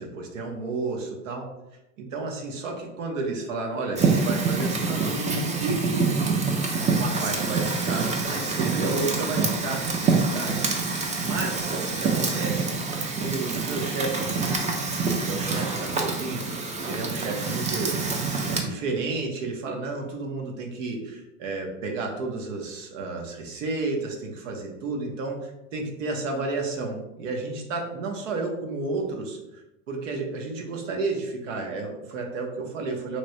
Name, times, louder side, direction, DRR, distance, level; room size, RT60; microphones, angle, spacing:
voice 1, 0.0-1.5 2.0-6.2 6.9-10.7 11.2-12.8 13.2-16.4 16.8-29.6 29.9-33.2, right 3 dB, 80° right, 1 dB, 0.9 m, -32 dB
Fire, 4.0-18.6, right 4 dB, 20° right, 0.5 m, -26 dB
3.1 x 3.0 x 2.6 m, 0.94 s
hypercardioid pair, 100°, 37 cm